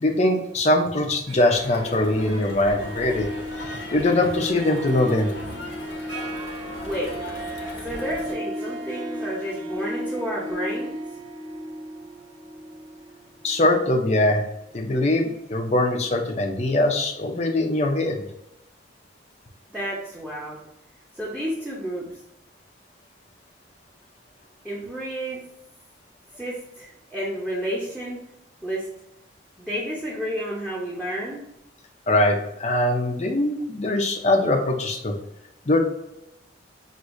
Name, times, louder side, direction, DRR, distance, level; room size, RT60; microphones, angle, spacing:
voice 1, 0.0-3.3 3.5-5.3 13.4-14.4 14.7-18.3 32.1-35.1 35.7-35.8, left 1 dB, 35° left, 2 dB, 0.6 m, -22 dB
Harp, 1.1-15.0, equal, 85° right, 1.0 m, -35 dB
Crowd, 1.5-8.3, left 1 dB, 65° left, 1.0 m, -38 dB
voice 2, 6.8-7.1 7.8-11.0 19.7-20.6 21.2-22.1 24.6-25.4 26.4-28.2 28.6-28.9 29.6-31.4, equal, 5° right, -6 dB, 0.8 m, -30 dB
6.2 x 2.6 x 2.6 m, 0.83 s
head